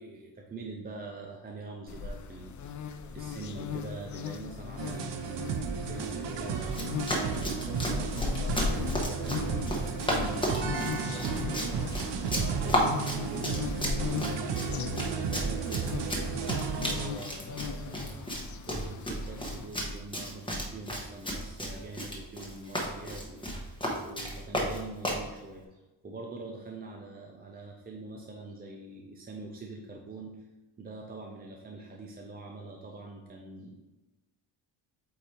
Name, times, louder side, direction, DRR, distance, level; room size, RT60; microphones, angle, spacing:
voice 1, 0.0-6.9 7.2-30.4 30.8-33.8, right 3 dB, 20° right, 0 dB, 0.5 m, -44 dB
sound 1, 1.9-19.7, left 6 dB, 45° left, 0.4 m, -38 dB
sound 2, 4.8-17.1, right 6 dB, 75° right, 0.8 m, -34 dB
Run, 6.7-25.3, equal, 10° left, 1.0 m, -34 dB
8.4 x 2.8 x 4.4 m, 1.1 s
wide cardioid pair, 155°, 43 cm